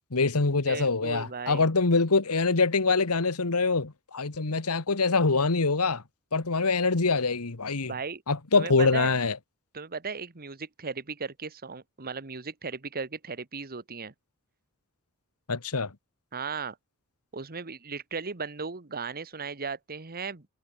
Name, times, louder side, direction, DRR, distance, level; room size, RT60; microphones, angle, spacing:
voice 1, 0.1-6.0 6.3-7.9 8.3-9.4 15.5-15.9, left 4 dB, 85° left, 1.5 m, -24 dB
voice 2, 0.6-1.6 7.8-8.2 8.6-9.1 9.7-14.1 16.3-16.8 17.3-20.5, right 5 dB, 45° right, 1.4 m, -36 dB
head